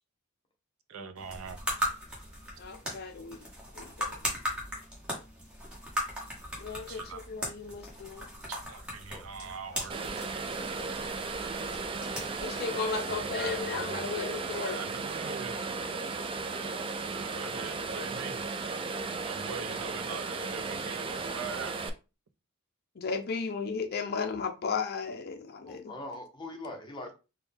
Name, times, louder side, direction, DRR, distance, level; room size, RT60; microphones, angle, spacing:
voice 1, 0.9-1.6 6.9-7.2 8.5-10.0 12.8-14.1 14.5-15.6 17.1-18.4 19.2-21.8, right 5 dB, 70° right, 0.5 m, -42 dB
sound 1, 1.2-13.6, equal, 5° right, 1.3 m, -39 dB
voice 2, 2.6-3.5 3.7-4.2 6.6-8.3 12.4-14.8 23.0-25.9, left 5 dB, 50° left, 0.5 m, -35 dB
sound 2, 9.9-21.9, right 4 dB, 25° right, 0.3 m, -35 dB
voice 3, 25.6-27.1, left 2 dB, 20° left, 0.9 m, -42 dB
4.4 x 2.3 x 3.4 m
head